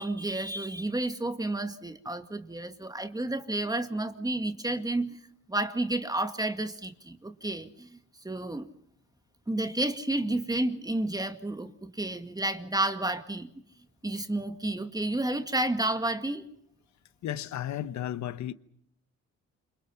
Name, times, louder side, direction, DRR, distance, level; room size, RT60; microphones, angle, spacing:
voice 1, 0.0-5.2 5.5-8.0 8.2-8.7 9.5-13.5 14.0-16.5, right 2 dB, 10° right, 2.1 m, -31 dB
voice 2, 17.2-18.5, left 11 dB, 65° left, 1.1 m, -33 dB
28.5 x 26.0 x 5.7 m
cardioid pair, 90°, 30 cm